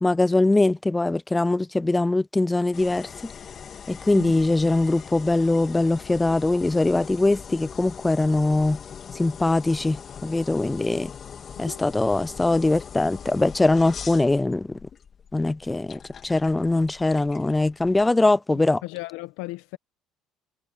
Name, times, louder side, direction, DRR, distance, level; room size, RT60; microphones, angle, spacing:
voice 1, 0.0-3.1 3.9-8.8 9.2-11.1 11.6-14.8 15.3-18.8, left 2 dB, 15° left, 0.4 m, -22 dB
sound 1, 2.7-18.1, left 7 dB, 45° left, 2.6 m, -41 dB
voice 2, 18.5-19.8, left 20 dB, 85° left, 1.1 m, -36 dB
supercardioid pair, 85°, 0 cm